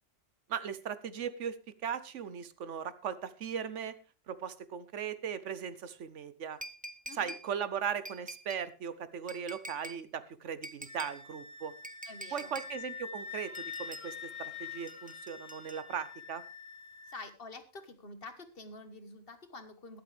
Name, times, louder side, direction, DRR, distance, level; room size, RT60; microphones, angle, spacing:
voice 1, 0.5-1.6 1.8-4.0 4.3-6.6 7.1-11.7 12.3-16.4, right 7 dB, 75° right, 14 dB, 1.2 m, -38 dB
sound 1, 6.6-7.5 8.0-8.7 9.3-10.0 10.6-11.2 11.8-12.7 13.5-14.1 14.9-16.1 17.1-17.2, right 1 dB, 10° right, 0.6 m, -46 dB
voice 2, 7.1-7.4 12.0-12.5 17.1-20.0, left 3 dB, 50° left, 9 dB, 1.6 m, -48 dB
Wind instrument woodwind instrument, 10.9-17.3, left 6 dB, 90° left, 1.6 m, -45 dB
21.5 x 7.9 x 3.4 m, 0.33 s
omnidirectional pair, 1.2 m